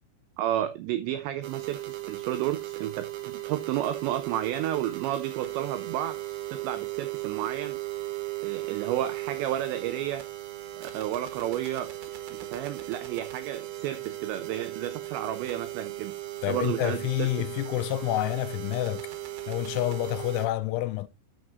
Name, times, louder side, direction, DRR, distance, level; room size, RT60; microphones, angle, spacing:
voice 1, 0.4-6.2 6.5-7.8 8.4-10.2 10.8-11.9 12.3-16.2 16.5-17.5, right 12 dB, 90° right, 2.5 m, -32 dB
sound 1, 1.4-20.5, right 16 dB, 70° right, 2.4 m, -37 dB
voice 2, 16.4-19.1 19.5-21.1, left 16 dB, 85° left, 2.9 m, -28 dB
11.0 x 7.2 x 2.5 m
omnidirectional pair, 5.7 m